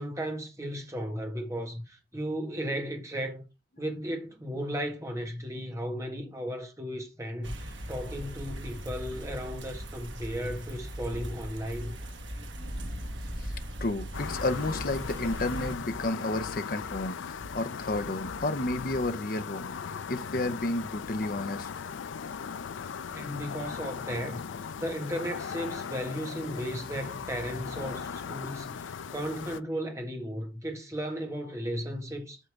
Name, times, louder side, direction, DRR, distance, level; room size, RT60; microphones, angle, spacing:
voice 1, 0.0-3.5 3.8-12.0 23.1-32.4, equal, 15° right, 1.8 m, -35 dB
sound 1, 7.4-15.8, equal, 85° right, 1.6 m, -39 dB
sound 2, 11.3-19.3, equal, 55° right, 2.7 m, -48 dB
voice 2, 13.8-19.7 20.1-21.7, left 2 dB, 50° left, 0.8 m, -31 dB
sound 3, 14.1-29.6, left 6 dB, 90° left, 0.4 m, -38 dB
8.3 x 5.8 x 3.6 m
head